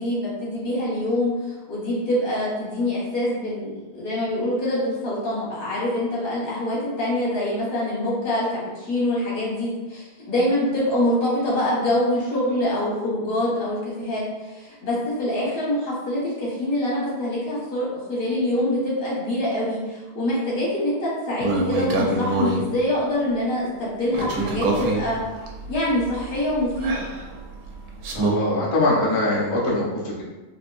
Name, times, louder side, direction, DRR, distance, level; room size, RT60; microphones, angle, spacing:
voice 1, 0.0-25.2 25.7-27.1, left 1 dB, 75° left, -7 dB, 1.7 m, -25 dB
sound 1, 21.4-22.6 24.1-28.3, right 2 dB, 85° right, 1.0 m, -26 dB
voice 2, 28.1-30.2, left 2 dB, 35° left, -5 dB, 0.5 m, -22 dB
3.6 x 2.5 x 2.5 m, 1.1 s
omnidirectional pair, 1.5 m